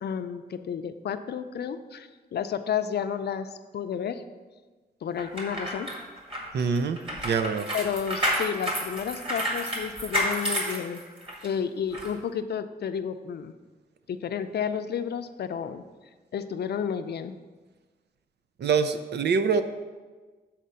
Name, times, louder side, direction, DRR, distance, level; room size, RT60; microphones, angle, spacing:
voice 1, 0.0-4.2 5.0-5.9 7.7-11.0 11.4-13.5 14.1-15.8 16.3-17.3, left 7 dB, 75° left, 10 dB, 0.5 m, -31 dB
sound 1, 5.2-11.5 11.9-12.1, equal, 30° right, 2.0 m, -30 dB
voice 2, 6.5-7.0 7.2-7.7 18.6-19.6, right 5 dB, 90° right, 10 dB, 0.5 m, -24 dB
7.5 x 4.3 x 6.8 m, 1.3 s
wide cardioid pair, 120°, 17 cm